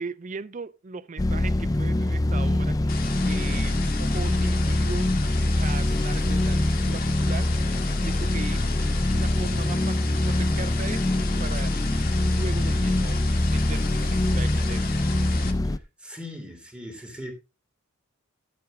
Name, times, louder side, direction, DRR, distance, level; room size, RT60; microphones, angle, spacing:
voice 1, 0.0-5.1 5.6-7.5 8.0-8.7 9.1-13.2 13.5-14.9, right 4 dB, 35° right, 0.5 m, -38 dB
sound 1, 1.2-15.8, left 1 dB, 15° left, 0.4 m, -24 dB
sound 2, 2.9-15.5, left 6 dB, 45° left, 1.7 m, -36 dB
voice 2, 16.0-17.3, left 1 dB, 5° right, 3.0 m, -39 dB
12.5 x 7.4 x 3.7 m
head